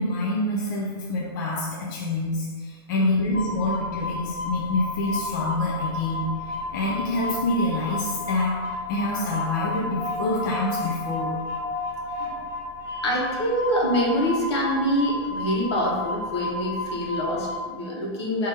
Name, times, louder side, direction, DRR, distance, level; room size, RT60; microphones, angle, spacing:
voice 1, 0.0-6.3 6.7-8.6 8.9-11.4, left 2 dB, 50° left, -2 dB, 0.6 m, -26 dB
voice 2, 3.0-3.4 12.2-12.4 12.9-18.5, equal, 85° left, -3 dB, 1.3 m, -25 dB
sound 1, 3.3-17.5, left 3 dB, 20° left, 0.9 m, -32 dB
4.6 x 2.9 x 3.5 m, 1.5 s
supercardioid pair, 175°, 14 cm